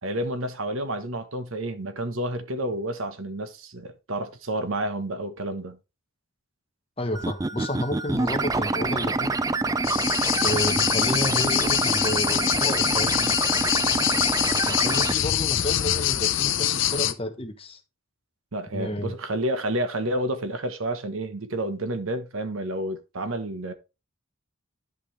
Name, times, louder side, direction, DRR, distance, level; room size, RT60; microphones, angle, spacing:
voice 1, 0.0-5.8 18.5-23.7, right 1 dB, 75° right, 1.2 m, -30 dB
voice 2, 7.0-9.4 10.4-13.4 14.7-17.8 18.7-19.2, equal, 25° left, 1.0 m, -31 dB
sound 1, 7.1-15.1, right 3 dB, 15° right, 0.3 m, -26 dB
sound 2, 9.8-17.1, left 12 dB, 65° left, 0.6 m, -24 dB
10.5 x 5.4 x 3.3 m
head